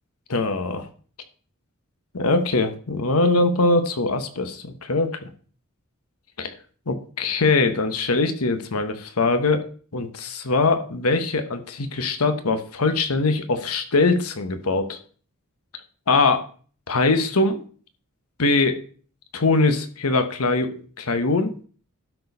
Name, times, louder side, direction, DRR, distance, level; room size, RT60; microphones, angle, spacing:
voice 1, 0.3-0.9 2.1-5.3 6.4-6.5 6.9-9.6 9.9-15.0 16.1-16.4 16.9-17.6 18.4-18.8 19.3-21.5, left 3 dB, 85° left, 8 dB, 1.1 m, -22 dB
12.0 x 4.6 x 5.5 m, 0.42 s
head